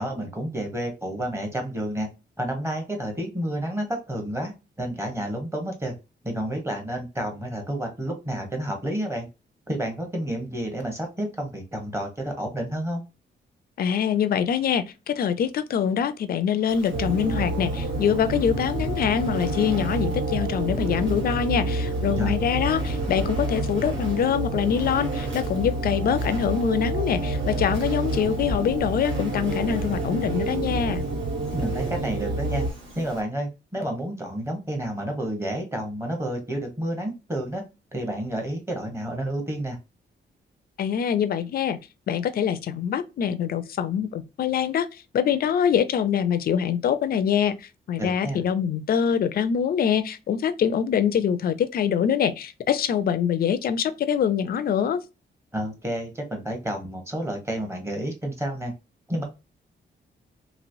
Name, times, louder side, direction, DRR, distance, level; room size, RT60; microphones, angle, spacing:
voice 1, 0.0-2.1 2.4-4.5 4.8-6.0 6.2-9.3 9.7-13.0 22.2-22.4 31.5-32.6 32.9-37.6 37.9-39.8 48.0-48.5 55.5-58.7 59.1-59.2, right 1 dB, 15° right, 0.9 m, -30 dB
voice 2, 13.8-31.0 40.8-41.8 42.1-44.9 45.1-55.0, left 8 dB, 50° left, 0.4 m, -24 dB
Insect, 16.7-33.2, right 1 dB, 80° right, 1.5 m, -41 dB
sound 1, 16.9-32.7, right 2 dB, 50° right, 0.6 m, -28 dB
3.0 x 2.9 x 2.6 m
wide cardioid pair, 155°, 19 cm